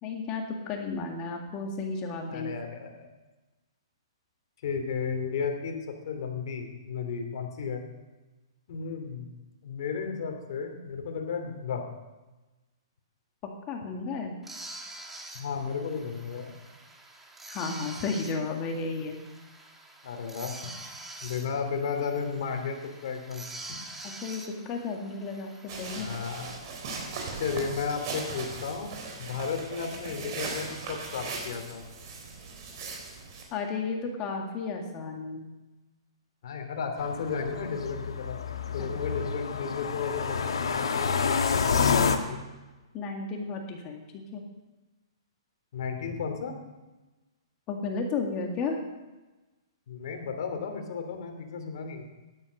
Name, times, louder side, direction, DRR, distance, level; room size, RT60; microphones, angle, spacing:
voice 1, 0.0-2.5 13.7-14.3 17.5-19.2 24.0-26.1 33.5-35.5 38.8-38.9 42.9-44.0 44.3-44.4 47.7-48.8, left 4 dB, 30° left, 2 dB, 2.0 m, -33 dB
voice 2, 2.3-3.1 4.6-5.8 6.0-7.8 8.7-9.3 9.6-11.8 15.3-16.5 20.0-20.7 21.2-23.4 26.0-26.5 27.4-28.9 29.2-31.8 36.4-38.4 38.7-41.9 42.2-42.4 45.7-46.5 49.9-52.1, left 6 dB, 55° left, 4 dB, 2.9 m, -34 dB
sound 1, 14.4-26.5, right 2 dB, 5° right, 1.6 m, -46 dB
sound 2, 25.7-33.4, right 4 dB, 45° right, 3.8 m, -38 dB
sound 3, 37.0-42.2, left 6 dB, 80° left, 1.5 m, -28 dB
12.5 x 11.0 x 6.4 m, 1.1 s
hypercardioid pair, 145°, 3 cm